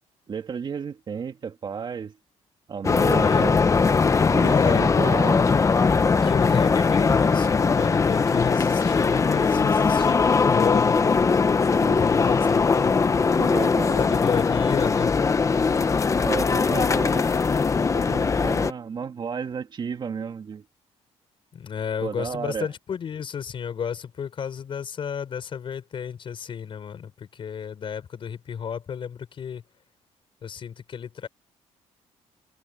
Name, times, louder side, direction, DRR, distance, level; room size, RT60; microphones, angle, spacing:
voice 1, 0.3-2.2 2.7-3.6 4.3-5.5 11.8-12.0 13.3-14.1 16.2-17.3 17.9-20.6 22.0-22.7, right 6 dB, 40° right, 2.4 m, -32 dB
sound 1, 2.8-18.7, left 5 dB, 25° left, 1.0 m, -20 dB
voice 2, 3.0-3.5 4.4-4.9 6.2-13.4 14.0-15.1 21.5-29.6 30.4-31.3, left 7 dB, 45° left, 5.1 m, -31 dB
cardioid pair, 120°, 12 cm